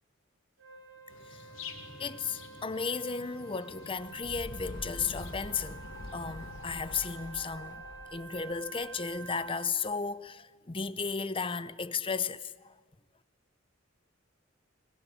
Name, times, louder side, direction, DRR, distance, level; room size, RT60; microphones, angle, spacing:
Wind instrument woodwind instrument, 0.6-9.7, right 5 dB, 70° right, 3.9 m, -49 dB
sound 1, 1.1-7.3, left 4 dB, 70° left, 4.2 m, -50 dB
voice 1, 2.0-5.8 6.1-7.8 8.1-12.7, left 5 dB, 25° left, 0.8 m, -34 dB
sound 2, 3.8-9.4, left 2 dB, 50° left, 1.3 m, -45 dB
24.5 x 22.0 x 10.0 m
head